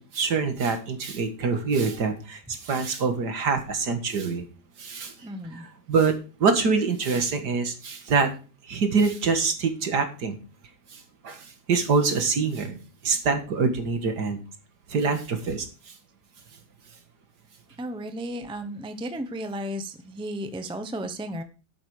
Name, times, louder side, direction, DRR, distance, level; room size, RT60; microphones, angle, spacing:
voice 1, 0.0-4.5 4.8-5.1 5.5-8.3 8.7-10.4 10.9-14.4 14.9-15.7, right 4 dB, 70° right, 7 dB, 2.3 m, -25 dB
voice 2, 5.2-5.6 17.8-21.4, equal, 5° right, 9 dB, 0.7 m, -34 dB
11.5 x 8.3 x 4.9 m, 0.35 s
omnidirectional pair, 1.9 m